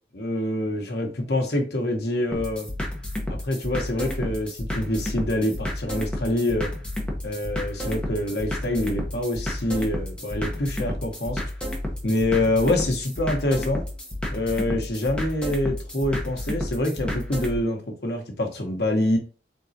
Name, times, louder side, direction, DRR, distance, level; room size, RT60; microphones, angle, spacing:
voice 1, 0.1-2.7 3.3-6.7 7.2-11.4 12.0-13.8 14.3-19.2, left 1 dB, 70° left, 3 dB, 1.0 m, -26 dB
sound 1, 2.3-17.6, left 1 dB, 5° left, 0.9 m, -31 dB
4.1 x 3.6 x 2.7 m, 0.36 s
head